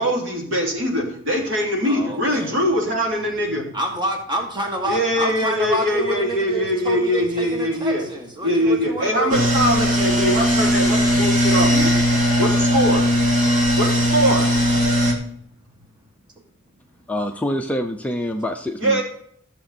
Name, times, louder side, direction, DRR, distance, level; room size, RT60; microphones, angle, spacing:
voice 1, 0.0-3.6 4.9-8.0 8.4-11.9 12.4-13.0 13.8-14.4 18.8-19.0, equal, 60° right, -1 dB, 3.2 m, -22 dB
voice 2, 1.8-2.6 3.7-9.5 14.3-14.9, right 2 dB, 20° right, 2 dB, 1.8 m, -28 dB
sound 1, 9.3-15.1, equal, 35° right, 2.2 m, -18 dB
voice 3, 17.1-19.0, left 1 dB, 5° left, 3 dB, 0.6 m, -26 dB
14.0 x 6.9 x 4.3 m, 0.65 s
head